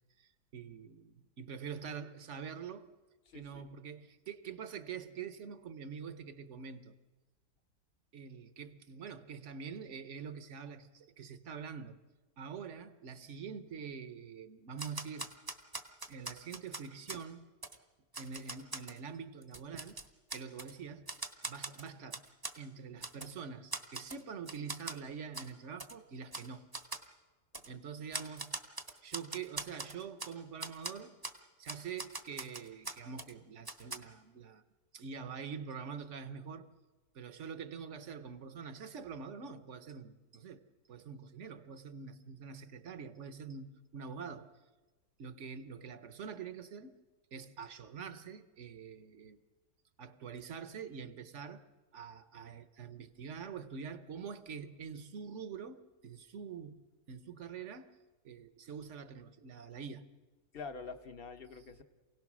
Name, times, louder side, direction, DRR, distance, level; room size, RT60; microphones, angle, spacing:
voice 1, 0.2-2.9 3.3-7.0 8.1-12.0 12.4-15.3 16.1-17.5 18.2-20.0 20.3-21.2 21.4-22.2 22.5-26.7 27.7-28.6 29.0-31.2 31.6-34.6 34.9-36.7 37.1-44.6 45.2-47.0 47.3-49.4 50.0-51.7 51.9-58.0 58.2-60.1, right 6 dB, 50° right, 1.1 m, -45 dB
voice 2, 3.3-3.7 27.6-27.8 60.5-61.8, left 4 dB, 40° left, 1.0 m, -46 dB
Typewriter, 14.8-17.2 17.6-17.8 18.1-19.0 19.4-20.7 21.1-22.6 23.0-23.3 23.7-24.2 24.5-25.0 25.3-25.5 25.8-25.9 26.3-26.5 26.7-27.1 27.5-27.7 28.1-30.3 30.6-30.9 31.2-31.4 31.7-33.3 33.6-34.0, right 2 dB, 15° right, 0.8 m, -42 dB
28.0 x 17.5 x 6.1 m
omnidirectional pair, 1.8 m